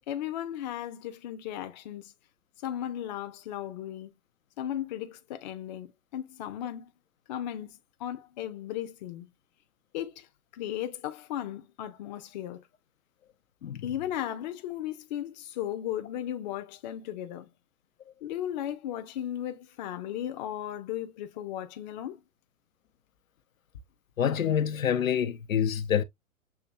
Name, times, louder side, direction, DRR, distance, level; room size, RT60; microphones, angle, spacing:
voice 1, 0.1-2.1 2.6-4.1 4.6-6.9 7.3-9.3 9.9-10.3 10.5-12.6 13.8-17.5 18.2-22.2, left 11 dB, 30° left, 0.7 m, -36 dB
voice 2, 24.2-26.0, left 9 dB, 70° left, 0.7 m, -27 dB
7.1 x 2.8 x 2.4 m
figure-of-eight pair, 120°, 42 cm